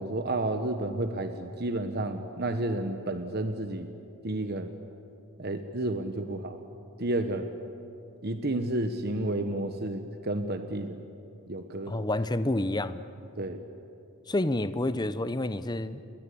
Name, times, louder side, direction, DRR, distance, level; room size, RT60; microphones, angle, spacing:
voice 1, 0.0-3.9 4.2-4.7 5.4-6.6 7.0-7.4 8.2-11.0 11.5-12.1 13.4-13.6, right 1 dB, 45° right, 8 dB, 1.2 m, -31 dB
voice 2, 11.9-13.0 14.3-16.0, left 1 dB, 20° left, 12 dB, 0.8 m, -29 dB
28.5 x 22.0 x 8.6 m, 2.7 s
head